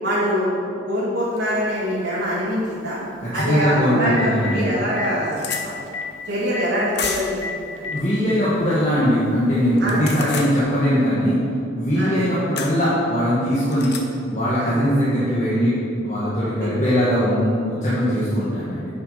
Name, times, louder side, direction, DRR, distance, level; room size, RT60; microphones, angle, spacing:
voice 1, 0.0-3.0 3.3-5.8 6.2-7.4 7.7-7.8 9.8-10.0 12.0-12.1 14.6-14.7, equal, 70° right, -10 dB, 2.4 m, -24 dB
Telephone, 1.4-1.5 3.6-3.7 4.0-4.6 5.0-5.1 5.5-5.6 5.9-6.0 6.5-6.6 7.0-7.1 7.4-8.0 9.0-9.1 10.5-10.6, left 4 dB, 85° left, 1.2 m, -30 dB
voice 2, 3.2-4.7 7.9-11.4 11.7-13.9 14.3-15.7 16.0-18.9, equal, 40° left, -9 dB, 1.8 m, -20 dB
sound 1, 4.0-4.1 4.6-4.7 4.9-5.6 6.9-7.4 9.8-10.5 12.6-12.8 13.7-14.0, left 6 dB, 60° left, 1.0 m, -30 dB
9.3 x 6.4 x 5.9 m, 2.6 s
head